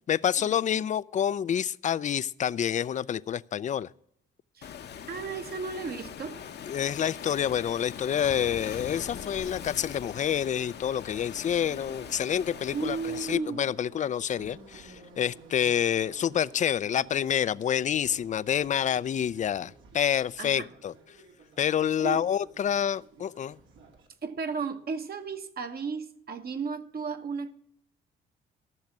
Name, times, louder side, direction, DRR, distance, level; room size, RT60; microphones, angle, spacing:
voice 1, 0.1-3.9 6.7-20.9 21.6-23.6, left 9 dB, 40° left, 0.4 m, -28 dB
Waves surf, 4.6-13.4, left 8 dB, 55° left, 0.9 m, -42 dB
voice 2, 5.1-6.4 12.7-13.6 20.4-20.7 22.0-22.2 24.2-27.5, right 5 dB, 50° right, 1.2 m, -34 dB
Subway metro underground, 11.5-24.1, right 4 dB, 80° right, 2.5 m, -53 dB
14.0 x 6.5 x 7.2 m
cardioid pair, 90°, 20 cm